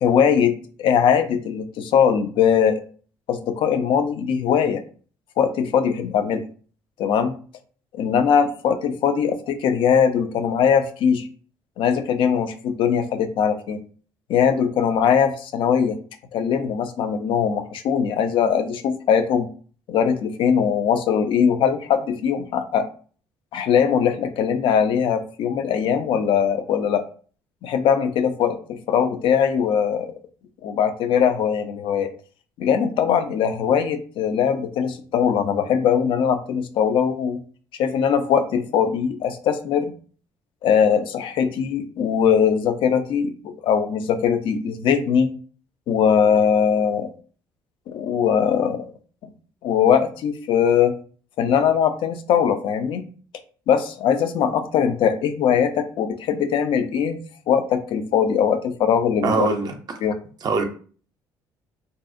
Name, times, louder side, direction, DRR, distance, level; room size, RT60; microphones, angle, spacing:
voice 1, 0.0-2.8 3.3-4.8 5.4-6.4 7.0-7.3 7.9-11.3 11.8-13.8 14.3-16.0 16.3-19.5 19.9-22.9 23.5-27.0 27.6-30.1 30.6-32.1 32.6-37.4 37.8-39.9 40.6-45.3 45.9-47.1 47.9-48.9 49.6-50.9 51.4-53.0 53.7-57.2 57.5-59.5 60.0-60.1, left 7 dB, 65° left, 0.4 m, -21 dB
voice 2, 59.2-60.0 60.4-60.6, right 4 dB, 45° right, 0.5 m, -23 dB
2.6 x 2.0 x 2.4 m
supercardioid pair, 75°, 9 cm